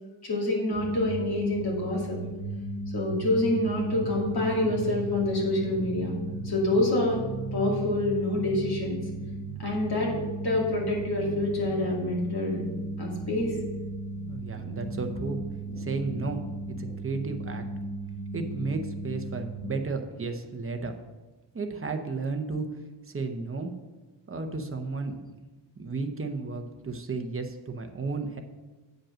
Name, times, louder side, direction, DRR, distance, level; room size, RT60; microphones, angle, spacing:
voice 1, 0.2-2.2 2.9-6.1 6.4-7.2 7.5-9.0 9.6-10.1 10.4-12.6 13.0-13.5, left 1 dB, 60° left, -3 dB, 2.6 m, -27 dB
sound 1, 0.7-19.7, right 2 dB, 15° left, 1.1 m, -35 dB
voice 2, 14.3-15.4 15.8-17.6 18.3-20.9 21.5-22.6 23.1-23.7 24.3-25.2 25.8-28.4, right 4 dB, 30° right, 5 dB, 0.7 m, -33 dB
8.8 x 5.2 x 6.3 m, 1.2 s
wide cardioid pair, 175°, 44 cm